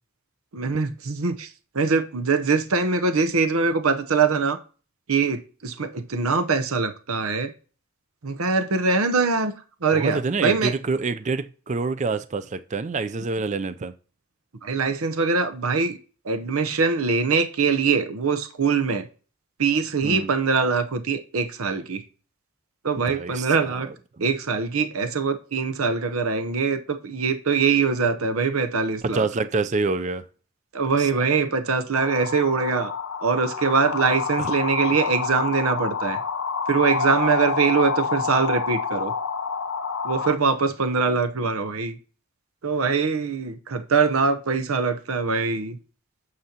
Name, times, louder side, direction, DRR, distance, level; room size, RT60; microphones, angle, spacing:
voice 1, 0.5-4.6 5.1-7.5 8.2-9.5 9.8-10.7 14.6-16.0 16.2-19.1 19.6-22.0 22.8-23.9 24.2-29.3 30.7-32.9 33.2-36.2 36.7-39.1 40.0-42.0 42.6-45.8, right 5 dB, 85° right, 0.8 m, -23 dB
voice 2, 9.9-13.9 20.0-20.3 23.1-23.9 29.0-30.2 31.0-31.2 34.4-34.5, right 3 dB, 35° right, 0.4 m, -27 dB
sound 1, 31.9-40.3, left 5 dB, 75° left, 0.7 m, -28 dB
9.5 x 6.6 x 2.8 m
head